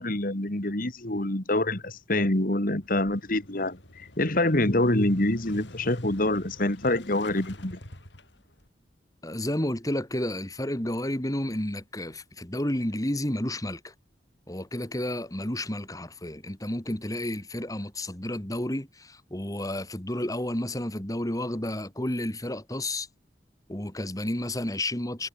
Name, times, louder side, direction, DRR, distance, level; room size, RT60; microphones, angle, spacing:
voice 1, 0.0-7.8, left 1 dB, 50° left, 2.6 m, -26 dB
Motorcycle / Engine starting, 2.8-8.7, left 1 dB, 75° left, 4.2 m, -47 dB
voice 2, 9.2-13.9 14.5-23.1 23.7-25.3, left 1 dB, 20° left, 2.3 m, -31 dB
head